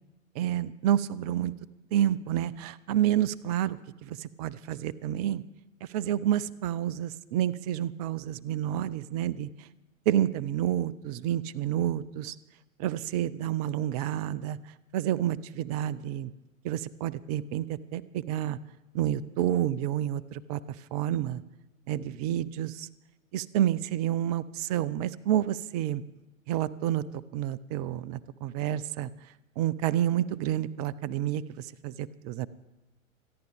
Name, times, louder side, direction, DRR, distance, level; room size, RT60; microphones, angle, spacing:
voice 1, 0.4-1.5 1.9-5.4 5.9-9.5 10.1-12.4 12.8-14.6 14.9-16.3 16.6-18.6 18.9-20.6 20.9-21.4 21.9-22.9 23.3-26.0 26.5-27.0 27.3-29.1 29.6-32.5, right 11 dB, 30° right, 19 dB, 0.5 m, -29 dB
26.5 x 10.5 x 3.5 m, 1.1 s
figure-of-eight pair, 100°, 42 cm